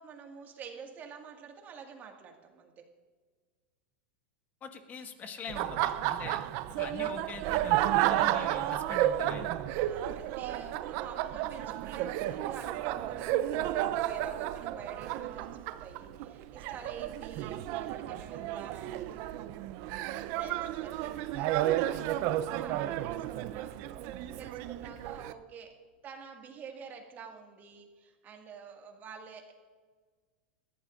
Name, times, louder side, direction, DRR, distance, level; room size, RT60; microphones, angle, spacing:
voice 1, 0.0-2.9 9.8-19.0 20.2-25.7 26.0-29.5, right 6 dB, 30° right, 3 dB, 1.9 m, -48 dB
voice 2, 4.6-6.4 6.7-9.5, left 5 dB, 30° left, 6 dB, 1.5 m, -43 dB
Laughter, 5.5-25.3, right 13 dB, 50° right, 0.6 m, -32 dB
21.5 x 14.5 x 2.6 m, 1.5 s
supercardioid pair, 125°, 6 cm